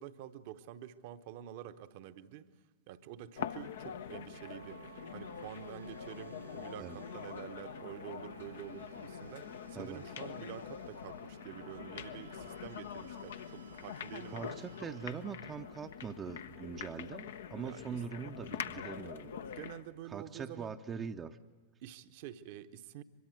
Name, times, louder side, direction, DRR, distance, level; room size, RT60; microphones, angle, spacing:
voice 1, 0.0-2.5 2.9-4.8 5.1-14.6 17.6-18.0 18.5-18.7 19.5-20.7 21.8-23.0, right 11 dB, 50° right, 11 dB, 1.0 m, -48 dB
sound 1, 3.4-19.9, left 8 dB, 60° left, 0.8 m, -45 dB
sound 2, 4.0-16.4, right 4 dB, 75° right, 0.9 m, -55 dB
voice 2, 14.3-19.3 20.0-21.4, right 6 dB, 25° right, 5 dB, 0.8 m, -42 dB
24.0 x 22.0 x 8.0 m, 1.2 s
figure-of-eight pair, 90°, 0 cm